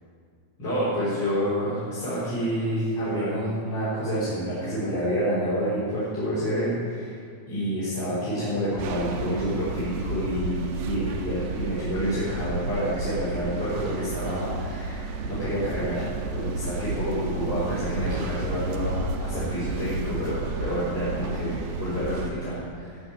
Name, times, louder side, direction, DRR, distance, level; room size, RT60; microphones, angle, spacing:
voice 1, 0.6-7.2 7.5-23.0, equal, 25° left, -12 dB, 4.4 m, -28 dB
sound 1, 8.8-22.3, right 3 dB, 85° right, 2.0 m, -32 dB
18.5 x 7.2 x 6.3 m, 2.2 s
omnidirectional pair, 5.3 m